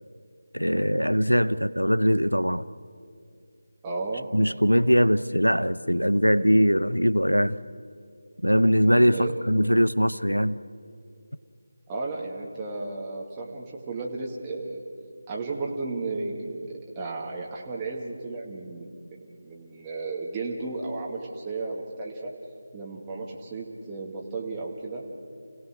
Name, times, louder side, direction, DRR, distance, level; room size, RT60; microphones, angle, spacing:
voice 1, 0.5-2.7 4.3-7.6 8.4-10.6, equal, 90° left, 0.7 m, -21 dB
voice 2, 3.8-4.3 9.1-9.3 11.9-14.8 15.3-22.3 22.7-25.0, right 3 dB, 15° right, 2.1 m, -34 dB
29.5 x 16.5 x 6.5 m
figure-of-eight pair, 160°, 0 cm